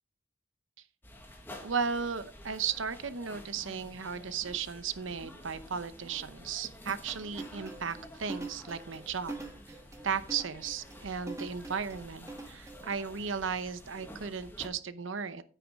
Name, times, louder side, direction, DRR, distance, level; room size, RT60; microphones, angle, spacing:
sound 1, 1.0-14.7, equal, 10° left, 1.5 m, -50 dB
voice 1, 1.6-9.3 10.0-15.4, right 6 dB, 70° right, 13 dB, 0.8 m, -35 dB
sound 2, 7.3-13.0, right 2 dB, 15° right, 1.4 m, -43 dB
9.3 x 9.2 x 3.6 m, 0.41 s
head